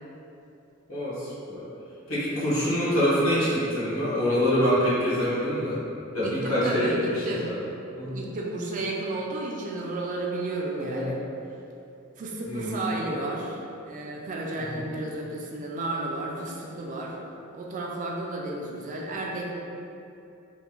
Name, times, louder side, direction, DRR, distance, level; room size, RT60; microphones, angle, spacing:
voice 1, 0.9-1.6 2.1-5.8 6.1-7.6 7.9-8.1 10.8-11.1 12.5-12.8 14.7-14.8, equal, 70° left, -11 dB, 1.2 m, -25 dB
voice 2, 6.2-7.5 8.1-11.2 12.2-13.6 13.9-17.2 17.5-19.5, right 2 dB, 40° right, -2 dB, 0.3 m, -32 dB
3.3 x 2.2 x 3.0 m, 2.7 s
head